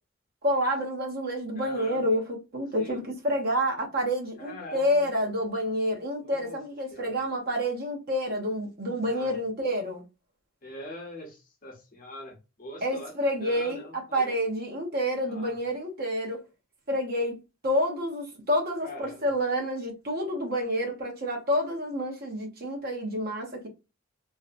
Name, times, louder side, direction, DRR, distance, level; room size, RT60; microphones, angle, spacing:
voice 1, 0.4-10.0 12.8-16.4 16.9-17.4 17.6-23.7, equal, 50° right, 0.8 m, -28 dB
voice 2, 1.6-2.0 2.8-3.0 4.4-5.1 6.2-6.6 6.9-7.2 9.0-9.4 10.6-13.1 13.4-14.4 15.3-15.6 18.8-19.3, left 1 dB, 45° left, 0.8 m, -43 dB
2.6 x 2.1 x 2.5 m
head